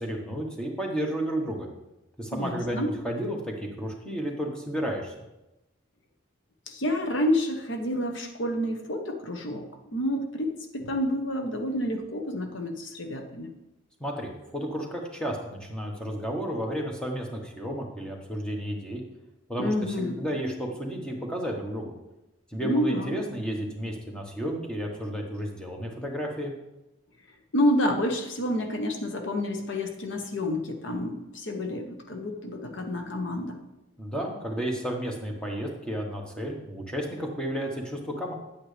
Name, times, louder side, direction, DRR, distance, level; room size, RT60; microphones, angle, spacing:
voice 1, 0.0-1.7 2.2-5.1 14.0-19.0 19.5-21.9 22.5-26.5 34.0-38.3, equal, 5° left, 0 dB, 1.3 m, -32 dB
voice 2, 2.3-3.0 6.7-9.7 9.9-13.5 19.6-20.2 22.6-23.3 27.5-33.6, left 1 dB, 65° left, 5 dB, 1.0 m, -29 dB
9.8 x 8.8 x 3.4 m, 0.96 s
head